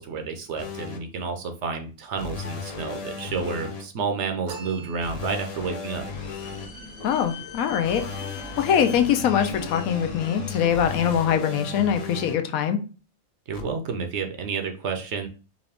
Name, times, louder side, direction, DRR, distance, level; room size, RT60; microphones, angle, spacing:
voice 1, 0.0-6.1 13.5-15.3, right 5 dB, 60° right, 0.9 m, -30 dB
sound 1, 0.6-1.0 2.2-3.8 5.0-6.7 7.8-12.3 13.5-13.6, left 5 dB, 45° left, 0.5 m, -35 dB
sound 2, 4.5-5.7, right 5 dB, 85° right, 1.4 m, -42 dB
sound 3, 5.9-11.2, left 3 dB, 65° left, 1.5 m, -41 dB
voice 2, 7.0-8.0 8.6-12.8, left 8 dB, 85° left, 1.1 m, -23 dB
4.8 x 2.5 x 3.4 m
omnidirectional pair, 1.5 m